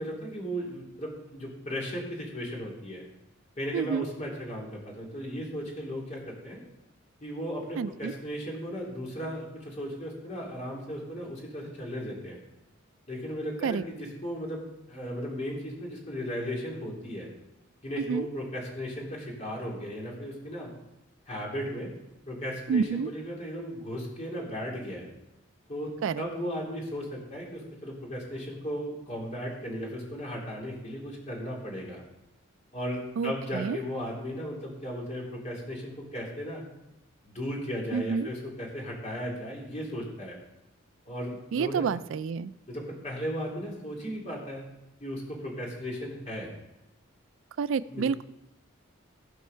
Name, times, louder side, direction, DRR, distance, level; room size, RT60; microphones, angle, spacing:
voice 1, 0.0-3.0 3.6-6.6 7.2-12.4 13.1-14.6 14.9-17.3 17.8-20.7 21.3-21.9 22.3-25.1 25.7-32.0 32.7-36.6 37.2-40.4 41.1-41.9 42.7-44.6 45.0-46.5 47.9-48.0, equal, 35° left, -3 dB, 3.1 m, -36 dB
voice 2, 3.7-4.1 7.8-8.1 13.6-13.8 18.1-18.3 22.7-23.1 26.0-26.2 33.2-33.8 37.9-38.3 41.5-42.5 47.6-48.2, right 6 dB, 70° right, 16 dB, 0.3 m, -29 dB
16.0 x 5.4 x 5.6 m, 0.91 s
head